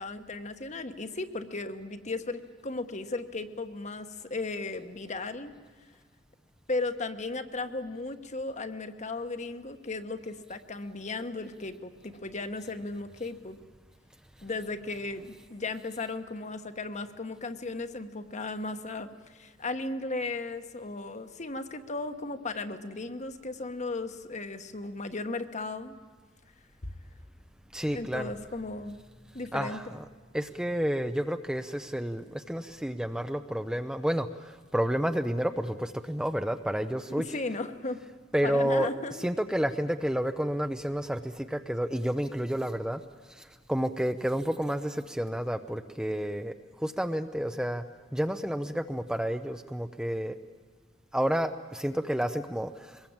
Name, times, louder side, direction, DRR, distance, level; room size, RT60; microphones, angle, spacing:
voice 1, 0.0-5.5 6.7-13.6 14.4-26.0 26.8-26.9 27.9-29.0 29.3-29.8 37.2-38.0 38.4-39.1, left 3 dB, 40° left, 9 dB, 1.2 m, -36 dB
voice 2, 27.7-28.3 29.5-30.1 30.3-37.4 38.3-43.0 43.3-47.8 48.1-50.3 51.1-53.1, equal, 5° right, 8 dB, 0.6 m, -30 dB
23.5 x 20.5 x 8.8 m, 1.4 s
head